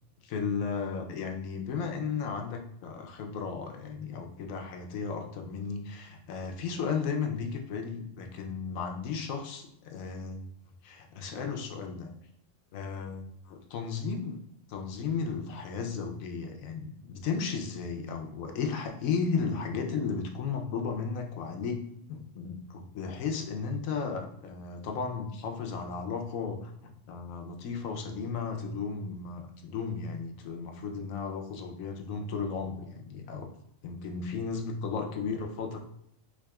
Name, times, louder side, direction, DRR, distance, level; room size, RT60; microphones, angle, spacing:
voice 1, 0.2-10.5 10.8-12.1 12.7-14.4 14.7-21.8 22.1-33.5 33.8-35.8, left 5 dB, 85° left, 3 dB, 1.0 m, -34 dB
4.8 x 2.6 x 2.3 m, 0.73 s
omnidirectional pair, 1.4 m